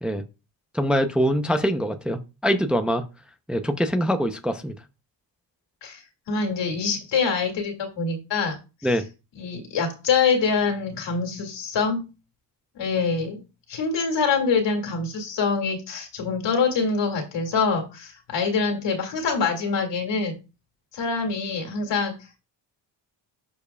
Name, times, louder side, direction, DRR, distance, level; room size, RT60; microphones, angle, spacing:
voice 1, 0.7-3.0 3.5-4.7 8.8-9.0, equal, ahead, 8 dB, 0.6 m, -23 dB
voice 2, 6.3-8.6 9.4-12.0 12.8-13.4 13.7-20.4 20.9-22.1, left 5 dB, 70° left, 2 dB, 2.4 m, -25 dB
12.0 x 4.6 x 2.3 m, 0.28 s
cardioid pair, 85°, 45 cm